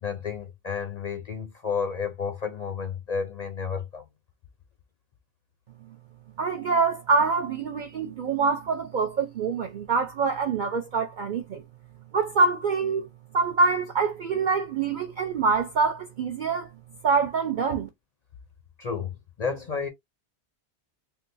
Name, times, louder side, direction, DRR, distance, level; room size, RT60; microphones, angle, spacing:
voice 1, 0.0-4.0 18.8-19.9, left 6 dB, 50° left, 0.5 m, -31 dB
voice 2, 6.4-11.6 12.1-13.1 13.3-16.7 17.0-17.9, right 4 dB, 55° right, 0.6 m, -25 dB
3.8 x 2.3 x 2.6 m
omnidirectional pair, 1.2 m